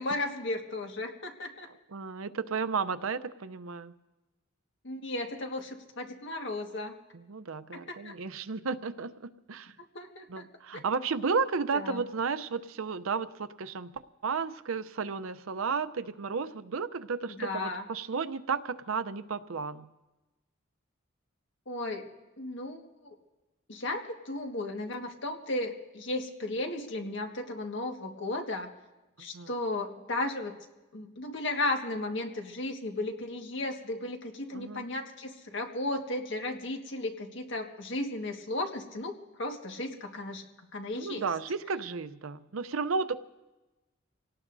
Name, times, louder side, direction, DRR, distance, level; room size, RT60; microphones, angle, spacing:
voice 1, 0.0-1.7 4.8-6.9 7.7-8.1 9.9-10.4 10.7-10.8 11.7-12.0 17.3-17.8 21.7-22.1 22.4-23.2 23.7-28.7 29.2-30.5 30.9-40.4 40.7-41.3, left 2 dB, 60° left, 3 dB, 1.7 m, -35 dB
voice 2, 1.9-3.9 7.1-9.7 10.3-13.9 14.2-19.9 29.3-29.5 34.5-34.8 41.0-43.2, right 5 dB, 90° right, 13 dB, 0.7 m, -33 dB
27.0 x 18.0 x 2.7 m, 1.1 s
head